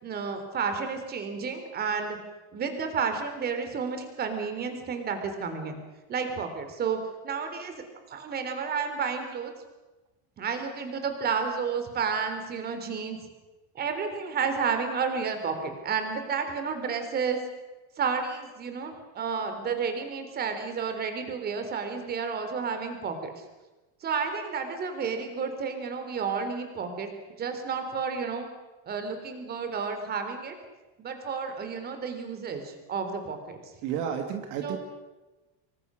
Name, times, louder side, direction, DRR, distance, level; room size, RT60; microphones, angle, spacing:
voice 1, 0.0-2.2 2.5-5.8 6.1-7.0 7.2-7.7 8.1-9.5 10.4-13.2 13.8-17.4 18.0-23.4 24.0-27.1 27.4-28.5 28.9-30.5 31.0-33.6 34.6-34.8, right 5 dB, 30° right, 7 dB, 3.7 m, -31 dB
voice 2, 33.8-34.8, right 8 dB, 60° right, 5 dB, 2.5 m, -31 dB
25.5 x 24.0 x 6.5 m, 1.1 s
cardioid pair, 165°, 33 cm